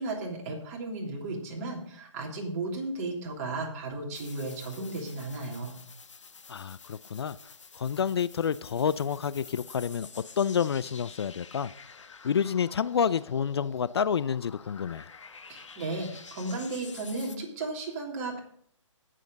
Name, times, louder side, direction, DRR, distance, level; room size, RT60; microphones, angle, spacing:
voice 1, 0.0-5.8 15.5-18.4, right 2 dB, 30° right, 3.1 m, -35 dB
sound 1, 4.1-17.4, left 5 dB, 70° left, 1.3 m, -49 dB
voice 2, 6.5-7.4 7.8-11.7 12.0-15.0, left 7 dB, 55° left, 0.4 m, -29 dB
17.0 x 7.6 x 3.9 m
figure-of-eight pair, 145°, 16 cm